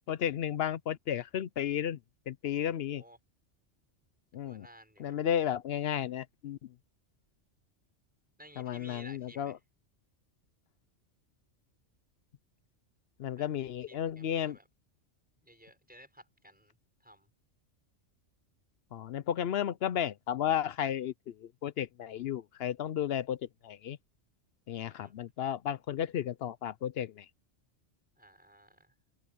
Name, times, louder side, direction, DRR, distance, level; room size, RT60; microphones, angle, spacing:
voice 1, 0.1-2.0 2.3-3.0 4.3-4.7 5.0-6.6 8.6-9.6 13.2-14.6 18.9-23.4 23.6-24.0 24.7-27.3, left 10 dB, 65° left, 0.7 m, -33 dB
voice 2, 4.4-5.2 8.4-9.6 13.4-13.5 13.9-14.6 15.4-16.7 17.0-17.3 24.7-25.1 28.2-28.9, equal, 5° right, 6.0 m, -56 dB
omnidirectional pair, 1.2 m